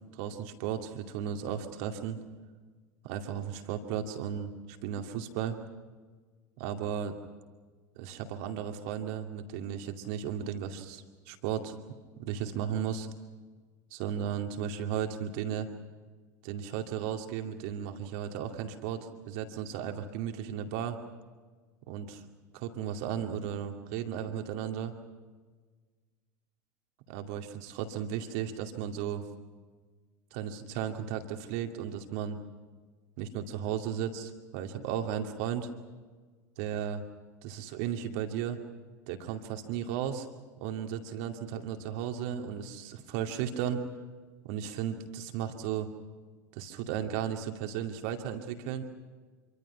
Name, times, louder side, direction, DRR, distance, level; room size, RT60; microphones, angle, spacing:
voice 1, 0.1-2.2 3.0-4.5 4.8-5.6 6.6-7.2 8.0-11.7 12.2-13.1 13.9-15.7 16.4-21.0 21.9-22.2 22.5-24.9 27.1-29.2 30.3-32.4 33.2-35.7 36.6-37.0 37.4-38.6 39.1-40.3 40.6-43.9 44.4-45.9 46.5-48.9, right 9 dB, 50° right, 5 dB, 2.4 m, -35 dB
26.5 x 24.5 x 5.8 m, 1.4 s
figure-of-eight pair, 80°, 9 cm